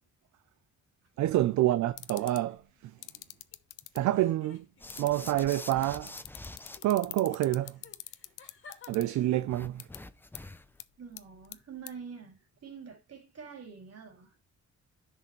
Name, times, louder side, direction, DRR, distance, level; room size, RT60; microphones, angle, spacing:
voice 1, 1.2-2.9 3.9-4.7 5.0-6.2 6.8-7.8 8.9-9.7, right 14 dB, 70° right, 0.5 m, -27 dB
sound 1, 1.6-1.8 2.1-3.6 4.1-5.2 5.7-9.7, left 5 dB, 40° left, 2.1 m, -58 dB
sound 2, 2.0-2.4 3.0-4.0 4.9-9.0 9.8-10.0 10.4-10.5 10.8-10.9 11.2-11.5 11.9-12.0, left 16 dB, 80° left, 0.6 m, -42 dB
sound 3, 4.8-6.8 9.5-10.8, left 2 dB, 5° left, 0.6 m, -46 dB
voice 2, 9.2-9.5 11.0-14.3, right 6 dB, 55° right, 3.7 m, -46 dB
10.5 x 6.1 x 3.1 m
cardioid pair, 90°, 30 cm